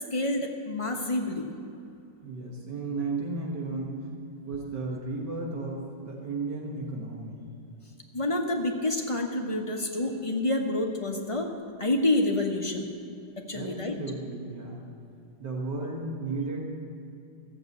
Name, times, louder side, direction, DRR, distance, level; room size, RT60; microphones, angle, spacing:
voice 1, 0.1-1.5 8.1-11.5 11.8-12.9 13.5-14.0, left 2 dB, 25° left, 1 dB, 0.8 m, -28 dB
voice 2, 2.2-4.1 4.5-7.5 13.5-14.8 15.4-16.6, right 3 dB, 70° right, -1 dB, 2.1 m, -34 dB
15.0 x 7.5 x 8.0 m, 2.7 s
omnidirectional pair, 1.9 m